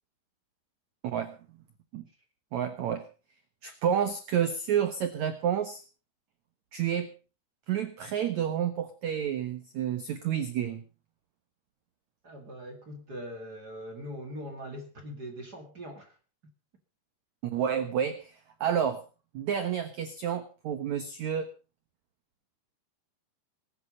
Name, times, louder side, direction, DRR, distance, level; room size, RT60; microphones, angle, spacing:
voice 1, 1.0-1.4 1.9-2.0 2.5-3.0 3.6-5.8 6.7-7.1 7.7-10.8 17.4-18.3 18.6-19.0 19.3-21.5, right 9 dB, 75° right, 9 dB, 1.7 m, -29 dB
voice 2, 12.2-16.1, equal, 35° right, 4 dB, 1.8 m, -41 dB
19.5 x 11.0 x 5.3 m, 0.36 s
omnidirectional pair, 5.1 m